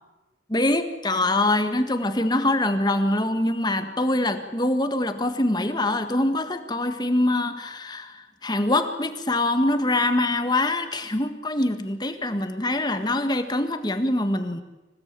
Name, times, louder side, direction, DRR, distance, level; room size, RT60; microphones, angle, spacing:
voice 1, 0.5-14.6, left 1 dB, 20° left, 8 dB, 1.7 m, -24 dB
26.0 x 17.5 x 9.0 m, 1.1 s
head